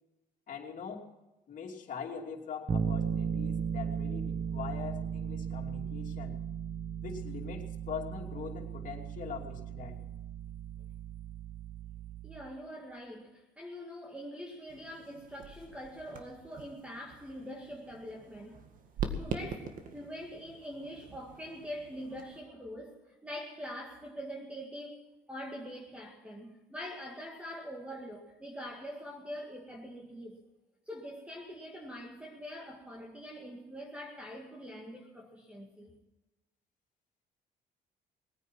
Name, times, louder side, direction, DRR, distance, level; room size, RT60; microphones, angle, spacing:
voice 1, 0.5-1.0 1.5-6.4 7.0-10.0, left 6 dB, 50° left, 2.8 m, -42 dB
Bass guitar, 2.7-12.6, right 7 dB, 30° right, 1.3 m, -36 dB
voice 2, 12.2-18.6 19.2-25.0 25.3-30.4 30.9-36.0, equal, 5° right, 2.0 m, -44 dB
sound 1, 14.7-22.4, right 5 dB, 55° right, 1.9 m, -43 dB
20.0 x 9.4 x 5.9 m
cardioid pair, 110°, 17 cm